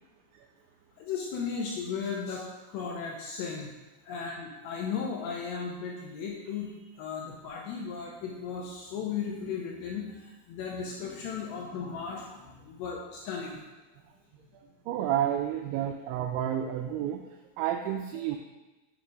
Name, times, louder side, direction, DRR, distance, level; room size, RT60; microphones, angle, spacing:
voice 1, 1.0-3.7 4.0-13.6, left 6 dB, 80° left, -1 dB, 2.6 m, -36 dB
voice 2, 14.9-17.2 17.6-18.4, right 10 dB, 90° right, 4 dB, 2.6 m, -30 dB
8.4 x 6.1 x 5.0 m, 1.1 s
omnidirectional pair, 5.8 m